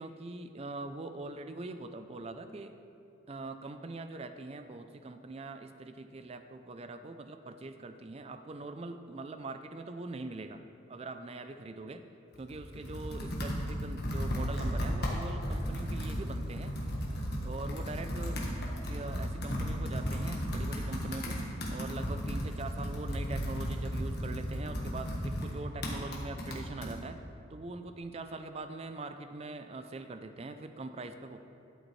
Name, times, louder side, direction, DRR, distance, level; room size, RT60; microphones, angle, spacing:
voice 1, 0.0-2.8 3.3-10.6 10.9-12.0 12.4-16.8 17.4-18.4 18.9-21.4 21.7-27.2 27.5-31.4, right 2 dB, 30° right, 8 dB, 0.4 m, -42 dB
Computer keyboard, 12.3-26.9, equal, 50° left, 1.4 m, -35 dB
12.5 x 7.9 x 3.2 m, 2.7 s
head